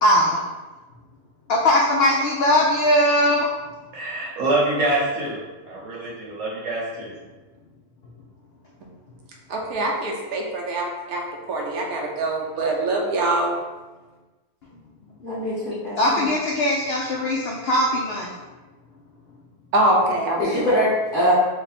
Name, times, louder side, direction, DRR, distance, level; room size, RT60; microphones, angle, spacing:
voice 1, 0.0-0.4 1.5-3.5 16.0-18.3, left 1 dB, 75° left, -3 dB, 0.5 m, -20 dB
voice 2, 3.9-5.4 5.7-7.1, right 2 dB, 60° right, -5 dB, 1.2 m, -25 dB
voice 3, 9.5-13.5 19.7-20.7, right 1 dB, 80° right, 0 dB, 1.1 m, -24 dB
voice 4, 15.2-16.3 20.4-21.3, equal, 35° left, -9 dB, 1.5 m, -23 dB
3.4 x 2.1 x 4.0 m, 1.2 s
omnidirectional pair, 1.6 m